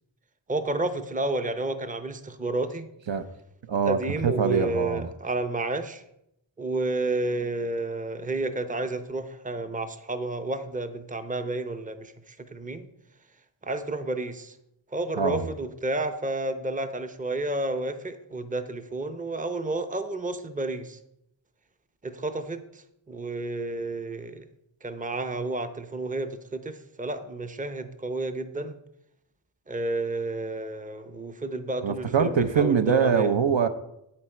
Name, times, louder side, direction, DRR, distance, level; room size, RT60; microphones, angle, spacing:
voice 1, 0.5-2.9 3.8-6.0 6.6-12.9 13.6-14.6 14.9-21.0 22.0-24.5 24.8-28.8 29.7-33.3, right 2 dB, 15° right, 9 dB, 0.6 m, -31 dB
voice 2, 3.7-5.1 15.1-15.5 31.8-33.7, right 6 dB, 70° right, 8 dB, 0.8 m, -23 dB
8.7 x 8.5 x 4.4 m, 0.80 s
wide cardioid pair, 55°, 47 cm